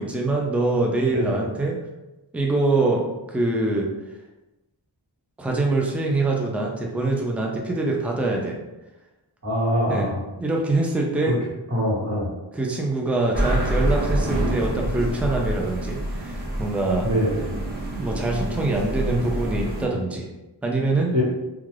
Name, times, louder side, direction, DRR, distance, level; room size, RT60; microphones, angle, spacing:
voice 1, 0.0-1.8 2.3-3.9 5.4-8.6 9.9-10.1 10.4-11.4 12.5-17.1 18.0-20.3 20.6-21.1, right 2 dB, 5° right, 0 dB, 0.4 m, -24 dB
voice 2, 9.4-10.2 11.3-11.4 11.7-12.3 17.0-17.5 21.1-21.2, equal, 40° right, -8 dB, 1.3 m, -23 dB
sound 1, 13.3-19.9, right 1 dB, 20° right, 0.7 m, -27 dB
2.4 x 2.3 x 3.2 m, 1.0 s
wide cardioid pair, 85°, 44 cm